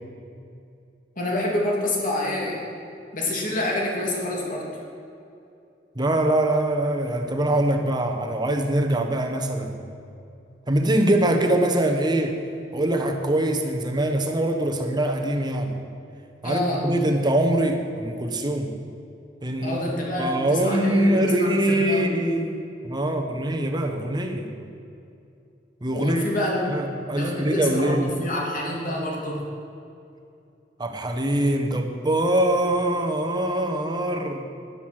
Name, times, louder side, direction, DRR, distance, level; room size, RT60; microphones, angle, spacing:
voice 1, 1.2-2.6 3.1-4.7 16.4-16.8 19.6-22.1 25.9-26.7 27.1-29.4, left 1 dB, 50° left, -2 dB, 2.9 m, -27 dB
voice 2, 5.9-9.8 10.7-12.4 12.7-15.7 16.4-18.8 19.4-19.8 20.2-24.5 25.8-26.2 26.7-28.2 30.8-34.4, right 1 dB, 25° right, 4 dB, 1.2 m, -23 dB
12.5 x 10.5 x 6.3 m, 2.6 s
head